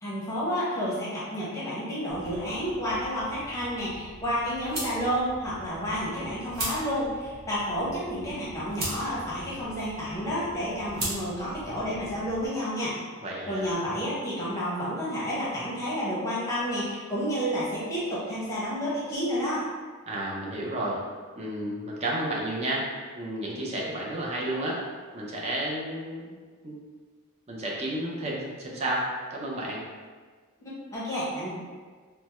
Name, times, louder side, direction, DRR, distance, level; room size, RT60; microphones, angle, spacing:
voice 1, 0.0-12.9 13.5-19.7 30.9-31.5, equal, 15° left, -8 dB, 0.7 m, -30 dB
sound 1, 2.1-12.5, right 1 dB, 45° right, 0.9 m, -40 dB
voice 2, 13.2-13.7 20.1-21.0 21.4-24.8 25.1-26.4 26.6-26.8 27.5-29.8, right 1 dB, 30° right, -4 dB, 0.5 m, -31 dB
3.3 x 2.0 x 2.9 m, 1.5 s
head